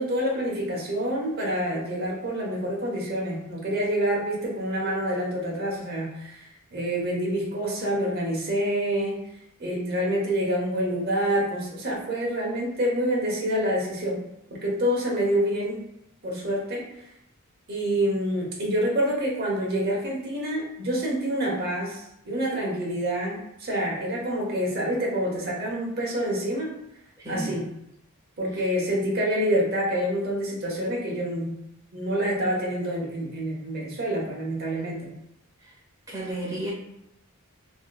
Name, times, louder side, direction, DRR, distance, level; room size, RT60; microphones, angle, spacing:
voice 1, 0.0-6.4 6.7-9.2 9.6-14.2 14.5-15.8 16.2-16.9 17.7-26.7 27.3-27.7 28.4-31.5 31.9-35.1, equal, 45° right, -3 dB, 0.9 m, -27 dB
voice 2, 27.2-27.5 36.1-36.7, right 1 dB, 15° right, -6 dB, 1.2 m, -32 dB
3.6 x 2.8 x 2.3 m, 0.82 s
head